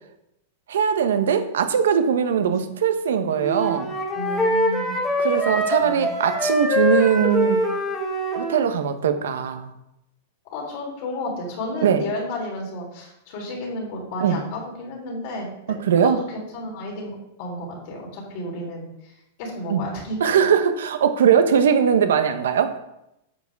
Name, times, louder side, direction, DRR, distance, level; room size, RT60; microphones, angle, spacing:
voice 1, 0.7-3.9 5.2-7.6 8.3-9.7 11.8-12.0 14.2-14.4 15.9-16.2 19.7-19.8 20.2-22.7, right 7 dB, 85° right, 8 dB, 1.1 m, -20 dB
Wind instrument woodwind instrument, 3.4-8.6, left 1 dB, 10° left, 1.5 m, -24 dB
voice 2, 4.1-5.0 5.8-6.1 10.5-19.1 19.4-20.2, left 1 dB, 50° left, -1 dB, 3.3 m, -32 dB
8.6 x 7.3 x 3.6 m, 0.84 s
supercardioid pair, 160°, 0 cm